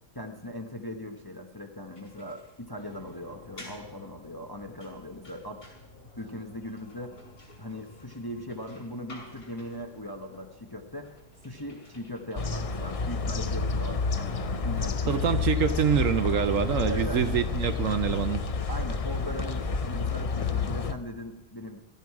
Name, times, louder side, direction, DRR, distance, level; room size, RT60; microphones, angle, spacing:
voice 1, 0.1-5.7 6.2-7.2 7.6-15.7 16.8-17.3 18.7-21.8, left 1 dB, 20° left, 4 dB, 0.8 m, -39 dB
sound 1, 1.9-20.3, left 2 dB, 75° left, 5.3 m, -55 dB
sound 2, 2.8-20.0, left 1 dB, 35° left, 4.0 m, -55 dB
sound 3, 12.4-20.9, left 5 dB, 55° left, 0.3 m, -29 dB
voice 2, 15.1-18.4, right 8 dB, 65° right, 11 dB, 1.0 m, -25 dB
16.0 x 13.5 x 4.7 m, 1.1 s
omnidirectional pair, 1.6 m